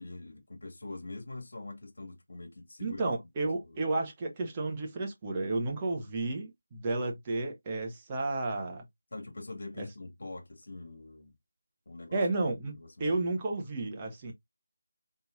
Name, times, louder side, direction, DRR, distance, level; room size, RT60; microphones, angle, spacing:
voice 1, 0.0-3.1 3.6-3.8 9.1-11.3 11.9-12.2 12.7-13.2, left 2 dB, 65° left, 1.9 m, -44 dB
voice 2, 2.8-8.8 9.8-9.9 12.1-14.3, right 2 dB, 20° right, 1.0 m, -32 dB
4.2 x 3.7 x 2.6 m
figure-of-eight pair, 170°, 0 cm